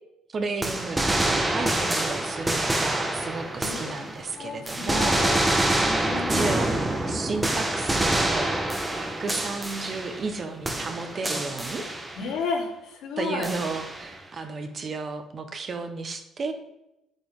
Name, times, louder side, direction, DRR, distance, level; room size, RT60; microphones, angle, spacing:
voice 1, 0.3-5.2 6.0-8.5 9.0-11.8 13.2-16.5, right 4 dB, 30° right, 7 dB, 1.0 m, -33 dB
sound 1, 0.6-4.3 4.7-10.4 10.6-12.3 13.4-14.2, right 1 dB, 10° right, 1.1 m, -26 dB
voice 2, 3.6-4.1 4.3-5.4 5.7-6.5 12.2-13.5, left 4 dB, 80° left, -2 dB, 3.0 m, -32 dB
10.0 x 9.0 x 3.7 m, 0.87 s
cardioid pair, 170°, 0 cm